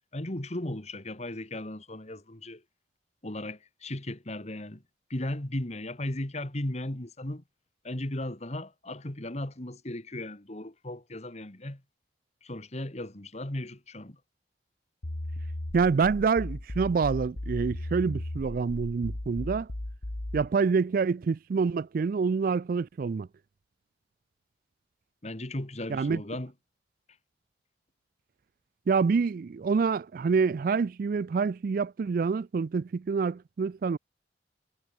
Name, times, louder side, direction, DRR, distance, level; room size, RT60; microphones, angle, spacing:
voice 1, 0.1-2.6 3.2-4.8 5.1-7.4 7.8-11.8 12.4-14.2 25.2-26.5, left 1 dB, 40° left, 2.0 m, -36 dB
sound 1, 15.0-20.5, left 1 dB, 90° left, 1.8 m, -36 dB
voice 2, 15.7-19.7 20.3-23.3 25.9-26.2 28.9-34.0, right 5 dB, 50° right, 0.4 m, -27 dB
head